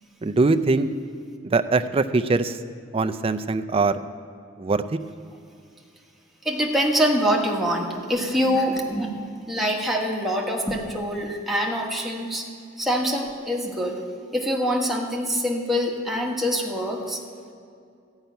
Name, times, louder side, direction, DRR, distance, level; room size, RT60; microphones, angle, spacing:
voice 1, 0.2-0.9 1.4-2.6 2.9-4.0 4.6-4.8, right 3 dB, 30° right, 9 dB, 0.4 m, -22 dB
voice 2, 6.4-9.1 9.5-12.5 12.8-14.0 14.3-17.2, equal, ahead, -2 dB, 1.3 m, -24 dB
13.5 x 5.6 x 9.1 m, 2.4 s
head